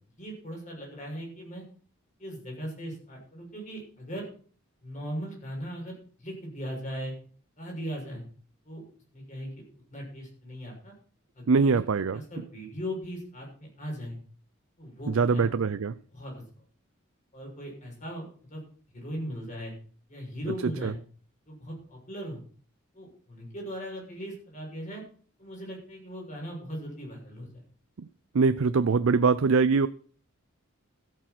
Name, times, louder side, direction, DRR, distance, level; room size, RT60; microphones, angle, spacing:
voice 1, 0.2-1.6 2.2-4.3 4.8-7.1 7.6-8.2 8.6-8.8 9.1-9.5 9.9-10.9 11.3-11.6 12.1-14.2 14.8-15.5 16.1-16.4 17.3-18.2 18.5-18.6 18.9-19.7 20.1-21.0 21.5-22.4 22.9-25.0 25.4-27.6, equal, 35° left, -1 dB, 6.8 m, -38 dB
voice 2, 11.5-12.2 15.1-15.9 20.8-20.9 28.3-29.9, right 4 dB, 75° right, 13 dB, 0.5 m, -23 dB
14.0 x 8.5 x 6.0 m, 0.44 s
head